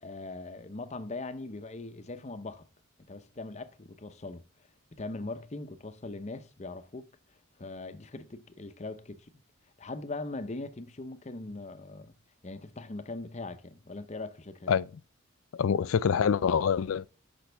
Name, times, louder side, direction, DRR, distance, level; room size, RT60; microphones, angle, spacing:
voice 1, 0.0-2.7 3.1-4.4 4.9-7.0 7.6-9.3 9.8-12.1 12.4-14.8, left 2 dB, 35° left, 0.7 m, -40 dB
voice 2, 15.5-17.1, left 7 dB, 80° left, 0.4 m, -25 dB
10.5 x 6.0 x 3.4 m
head